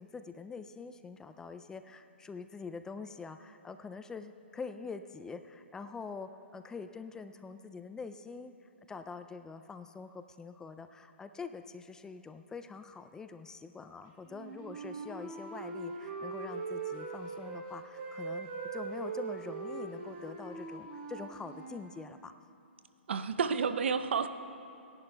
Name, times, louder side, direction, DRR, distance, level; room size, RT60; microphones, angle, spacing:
voice 1, 0.0-8.5 8.9-22.3, left 4 dB, 10° left, 9 dB, 0.3 m, -45 dB
Wind instrument woodwind instrument, 14.3-17.6 17.9-21.8, right 4 dB, 35° right, 1.9 m, -41 dB
voice 2, 23.1-24.3, right 6 dB, 70° right, 11 dB, 0.6 m, -30 dB
29.0 x 11.0 x 2.3 m, 2.6 s
hypercardioid pair, 130°, 6 cm